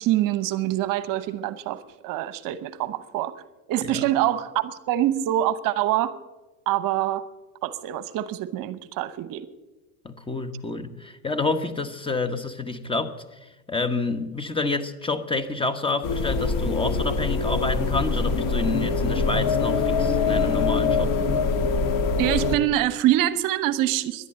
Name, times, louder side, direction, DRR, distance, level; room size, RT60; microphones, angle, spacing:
voice 1, 0.0-3.3 3.7-6.2 6.7-7.2 7.6-9.5 22.2-24.3, right 13 dB, 55° right, 0.9 m, -25 dB
voice 2, 10.0-13.1 13.4-21.2, left 3 dB, 15° left, 1.1 m, -28 dB
sound 1, 16.0-22.6, left 4 dB, 50° left, 1.7 m, -24 dB
11.5 x 11.0 x 8.9 m
supercardioid pair, 100°, 41 cm